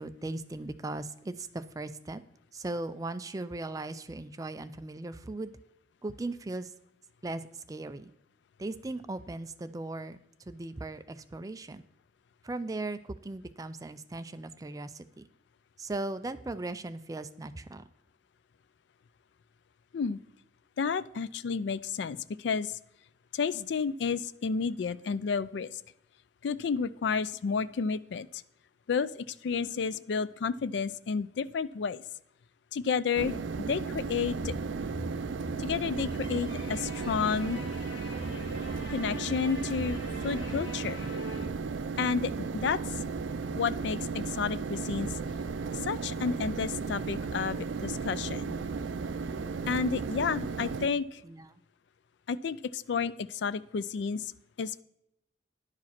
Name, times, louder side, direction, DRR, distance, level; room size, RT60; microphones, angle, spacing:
voice 1, 0.0-2.2 2.5-5.5 6.0-6.7 7.2-8.1 8.6-10.2 10.5-11.8 12.4-15.2 15.8-17.8 51.2-51.5, right 2 dB, 20° right, 12 dB, 0.4 m, -38 dB
voice 2, 20.8-22.8 23.3-25.8 26.4-28.4 28.9-32.0 32.7-34.5 35.6-37.6 38.9-41.1 42.0-43.0 43.6-45.1 45.7-48.5 49.7-51.2 52.3-54.3 54.6-54.8, left 5 dB, 65° left, 17 dB, 0.4 m, -31 dB
sound 1, 33.2-50.9, right 4 dB, 80° right, 0.5 m, -35 dB
sound 2, 34.3-41.5, equal, 90° left, 1.9 m, -42 dB
10.5 x 4.9 x 5.9 m, 0.79 s
head